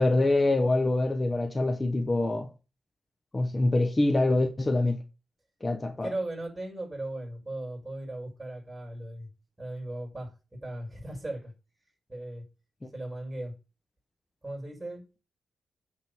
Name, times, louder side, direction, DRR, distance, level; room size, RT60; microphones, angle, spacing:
voice 1, 0.0-2.5 3.3-5.0 5.6-6.1, left 2 dB, 25° left, 1.2 m, -25 dB
voice 2, 6.0-9.3 9.6-10.3 10.6-11.5 12.1-12.4 12.9-13.5 14.4-15.0, right 1 dB, 20° right, 6.2 m, -37 dB
9.3 x 4.0 x 7.1 m
cardioid pair, 95°, 0 cm